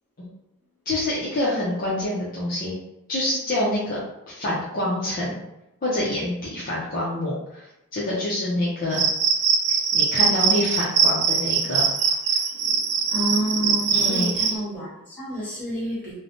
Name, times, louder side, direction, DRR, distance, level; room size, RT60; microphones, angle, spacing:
voice 1, 0.9-2.8 3.1-4.0 4.3-5.4 5.8-7.7 7.9-9.1 9.9-11.9 13.9-14.6, left 1 dB, 40° left, -7 dB, 0.6 m, -26 dB
Cricket, 8.9-14.5, right 6 dB, 85° right, 0.4 m, -22 dB
voice 2, 13.1-16.2, right 1 dB, 5° left, -9 dB, 1.3 m, -29 dB
3.2 x 2.0 x 2.6 m, 0.88 s
head